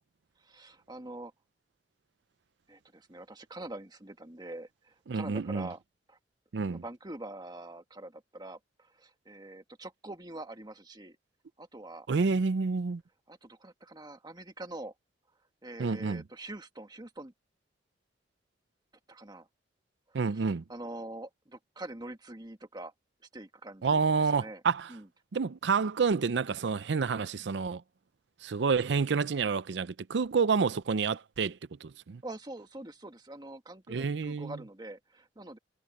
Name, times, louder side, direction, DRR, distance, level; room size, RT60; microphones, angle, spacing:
voice 1, 0.4-1.3 2.7-5.8 6.1-6.2 6.7-11.2 11.6-12.1 13.3-14.9 15.6-17.3 19.1-19.5 20.1-22.9 23.3-24.6 24.9-25.1 32.2-35.6, right 2 dB, 25° right, 1.8 m, -45 dB
voice 2, 5.1-5.7 6.5-6.8 12.1-13.0 15.8-16.2 20.1-20.6 23.8-24.9 25.3-27.8 28.4-32.2 33.9-34.5, right 5 dB, 75° right, 0.5 m, -29 dB
head